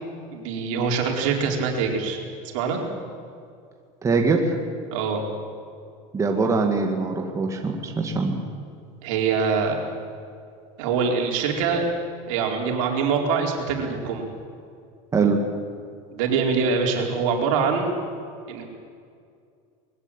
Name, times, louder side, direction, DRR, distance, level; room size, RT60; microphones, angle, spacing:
voice 1, 0.3-2.2 2.5-2.8 4.9-5.2 9.0-9.8 10.8-11.8 12.3-14.3 16.1-17.9 18.5-18.6, right 5 dB, 80° right, 1 dB, 4.5 m, -24 dB
voice 2, 4.0-4.6 6.1-8.4 15.1-15.4, right 4 dB, 20° right, 3 dB, 2.1 m, -22 dB
21.5 x 16.5 x 10.0 m, 2.3 s
supercardioid pair, 145°, 17 cm